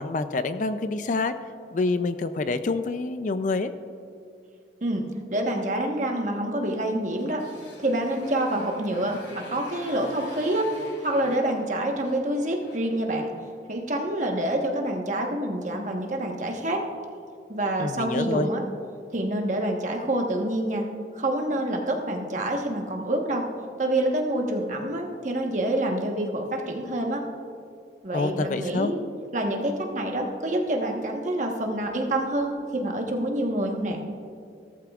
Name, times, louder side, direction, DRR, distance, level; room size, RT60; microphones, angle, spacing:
voice 1, 0.0-1.3 1.7-3.7 17.8-18.5 28.1-28.9, left 3 dB, 45° left, 11 dB, 0.4 m, -27 dB
voice 2, 5.3-7.4 7.8-10.7 11.0-13.3 13.7-16.8 17.5-18.6 19.1-20.9 21.1-23.4 23.8-27.2 28.0-29.0 29.3-34.0, right 1 dB, 40° right, 1 dB, 1.2 m, -27 dB
Motorcycle, 7.1-13.6, left 1 dB, 85° left, 2.9 m, -47 dB
15.5 x 13.5 x 2.4 m, 2.4 s
head